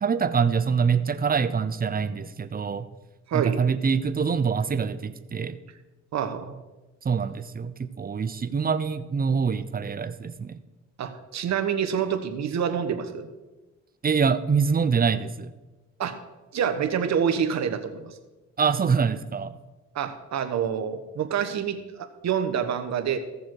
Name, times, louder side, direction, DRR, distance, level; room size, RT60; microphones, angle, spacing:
voice 1, 0.0-2.9 3.3-5.6 7.0-10.6 14.0-15.5 18.6-19.5, right 6 dB, 30° right, 13 dB, 0.7 m, -25 dB
voice 2, 3.3-3.6 6.1-6.5 11.0-13.3 16.0-16.2 16.5-18.2 19.9-23.2, right 8 dB, 65° right, 7 dB, 1.3 m, -27 dB
15.5 x 7.1 x 4.7 m, 1.1 s
cardioid pair, 90°, 30 cm